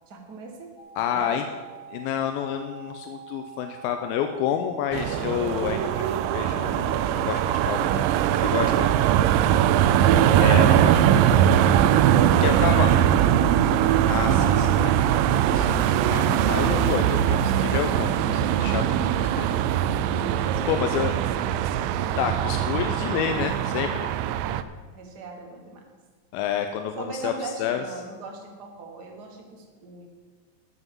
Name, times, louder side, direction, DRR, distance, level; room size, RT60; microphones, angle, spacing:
voice 1, 0.1-0.7 1.0-1.4 12.3-13.2 20.2-20.9 24.9-25.8 26.9-30.1, right 3 dB, 45° right, 2 dB, 1.3 m, -39 dB
sound 1, 0.8-19.9, right 9 dB, 75° left, 1.3 m, -44 dB
voice 2, 1.0-1.4 1.9-8.0 8.4-8.9 10.4-11.5 12.4-12.9 14.0-15.0 15.5-19.5 20.2-21.1 22.1-24.1 26.3-27.8, left 9 dB, 90° left, 6 dB, 2.4 m, -29 dB
sound 2, 4.9-24.6, right 10 dB, 80° right, 2.2 m, -21 dB
13.0 x 6.0 x 7.5 m, 1.4 s
omnidirectional pair, 4.2 m